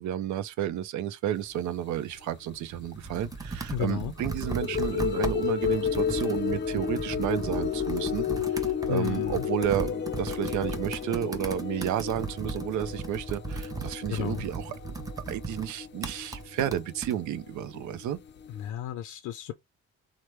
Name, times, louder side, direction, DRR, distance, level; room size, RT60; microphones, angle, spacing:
voice 1, 0.0-14.7 15.3-18.2, right 11 dB, 75° right, 0.5 m, -32 dB
sound 1, 2.2-2.3 4.2-18.7, left 8 dB, 40° left, 0.4 m, -33 dB
Computer keyboard, 2.5-17.2, right 4 dB, 10° right, 0.7 m, -37 dB
voice 2, 3.7-4.1 8.9-9.4 14.1-14.4 18.6-19.5, left 11 dB, 90° left, 0.5 m, -32 dB
3.0 x 2.1 x 3.2 m
cardioid pair, 90°, 30 cm